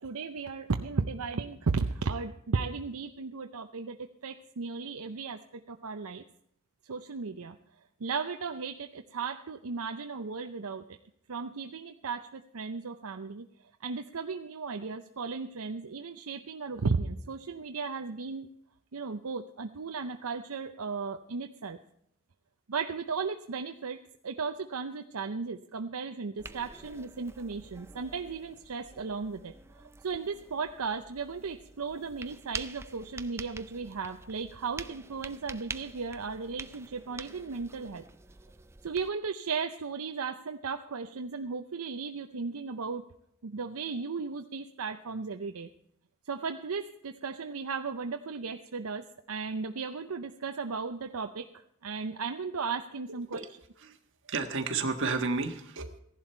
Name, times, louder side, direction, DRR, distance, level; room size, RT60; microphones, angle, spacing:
voice 1, 0.0-6.2 6.8-7.6 8.0-11.0 11.3-13.5 13.8-18.5 18.9-21.8 22.7-38.0 38.8-43.1 43.4-45.7 46.3-53.4, right 4 dB, 80° right, 6 dB, 0.7 m, -35 dB
sound 1, 26.4-39.1, right 3 dB, 10° right, 0.4 m, -47 dB
voice 2, 54.3-56.0, right 4 dB, 60° right, 5 dB, 1.6 m, -31 dB
16.0 x 11.5 x 4.4 m, 0.73 s
head